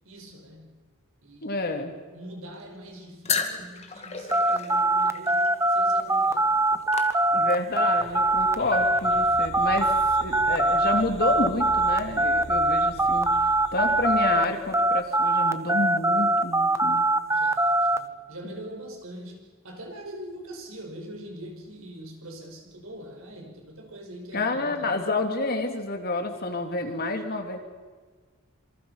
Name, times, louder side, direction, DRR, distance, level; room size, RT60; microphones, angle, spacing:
voice 1, 0.0-0.8 1.2-1.8 2.1-6.6 7.2-7.4 17.2-25.1, right 1 dB, 75° right, 3 dB, 5.7 m, -43 dB
voice 2, 1.4-1.9 7.3-13.3 13.7-17.1 24.3-27.6, left 2 dB, 45° left, 5 dB, 2.9 m, -29 dB
sound 1, 3.3-7.7, left 5 dB, 30° left, 2.3 m, -34 dB
sound 2, 4.3-14.5 14.7-18.0, right 2 dB, 15° right, 1.0 m, -22 dB
sound 3, 7.9-15.1, left 1 dB, 80° left, 5.0 m, -44 dB
27.0 x 25.0 x 5.7 m, 1.5 s
head